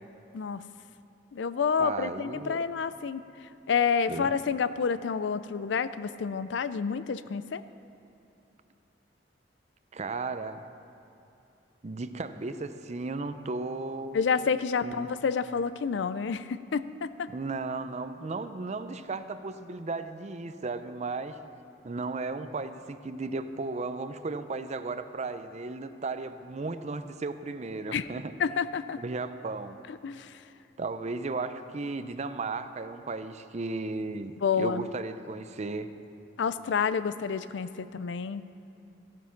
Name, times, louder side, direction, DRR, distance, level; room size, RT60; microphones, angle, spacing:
voice 1, 0.3-0.6 1.3-3.2 3.7-7.6 14.1-17.3 27.9-28.1 28.4-29.0 29.9-30.4 34.4-34.9 36.4-38.4, left 6 dB, 75° left, 14 dB, 0.4 m, -29 dB
voice 2, 1.8-2.6 4.1-4.3 9.9-10.6 11.8-14.2 14.8-15.1 17.3-21.4 21.8-28.3 29.0-29.9 30.8-35.9, right 3 dB, 40° right, 11 dB, 0.5 m, -35 dB
14.5 x 9.4 x 5.9 m, 2.8 s
head